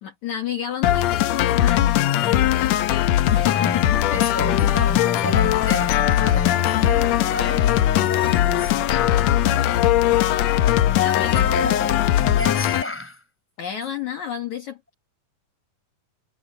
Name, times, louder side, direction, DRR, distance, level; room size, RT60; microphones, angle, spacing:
voice 1, 0.0-2.7 3.3-4.0 10.8-11.5 13.6-15.0, left 10 dB, 60° left, 3.0 m, -30 dB
sound 1, 0.8-12.8, left 12 dB, 80° left, 1.5 m, -19 dB
sound 2, 1.9-8.1, right 3 dB, 80° right, 9.2 m, -50 dB
voice 2, 3.4-10.5 11.2-13.2, left 1 dB, 5° left, 4.9 m, -32 dB
omnidirectional pair, 4.1 m